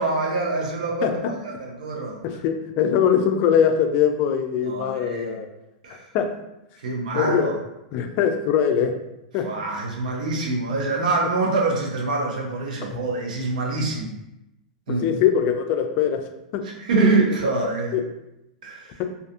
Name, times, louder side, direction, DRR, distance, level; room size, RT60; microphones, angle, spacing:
voice 1, 0.0-1.1 1.4-2.2 4.6-5.4 5.8-6.1 6.8-7.6 9.4-14.2 14.9-15.1 16.8-18.0 18.6-19.0, right 3 dB, 85° right, 0 dB, 0.7 m, -25 dB
voice 2, 1.0-1.4 2.2-5.5 6.1-6.3 7.1-7.5 7.9-9.0 9.3-9.5 12.9-13.0 14.9-16.7 17.0-17.3 17.5-18.0 19.0-19.1, left 8 dB, 45° left, 6 dB, 0.3 m, -22 dB
2.6 x 2.4 x 2.4 m, 0.88 s
hypercardioid pair, 125°, 4 cm